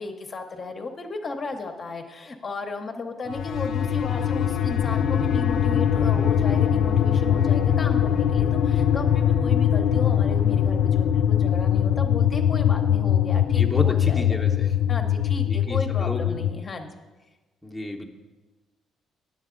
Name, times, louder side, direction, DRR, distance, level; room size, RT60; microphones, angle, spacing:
voice 1, 0.0-14.4 14.7-16.9, left 3 dB, 35° left, 4 dB, 0.7 m, -35 dB
sound 1, 3.3-16.6, left 9 dB, 65° left, 0.4 m, -22 dB
voice 2, 13.6-14.7 15.5-16.4 17.6-18.1, left 1 dB, 5° left, -1 dB, 0.8 m, -31 dB
9.1 x 7.3 x 3.8 m, 1.2 s
cardioid pair, 90°, 0 cm